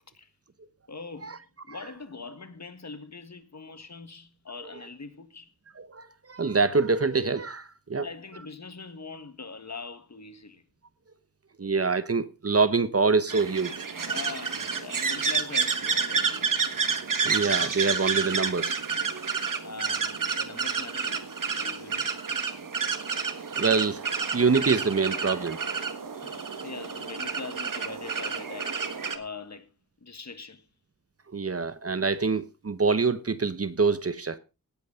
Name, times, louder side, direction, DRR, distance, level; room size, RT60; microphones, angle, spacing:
voice 1, 0.9-1.4 1.7-5.5 7.9-10.6 14.1-16.5 19.6-21.3 21.5-22.1 26.1-28.8 29.1-29.7 30.0-30.6, left 4 dB, 50° left, 1.8 m, -42 dB
voice 2, 5.8-8.1 11.6-13.7 17.2-18.8 19.1-19.3 23.6-24.0 24.3-25.6 31.3-34.4, right 4 dB, 40° right, 1.1 m, -25 dB
sound 1, 13.3-29.2, right 5 dB, 65° right, 1.6 m, -30 dB
18.0 x 8.4 x 5.0 m
wide cardioid pair, 105°, 35 cm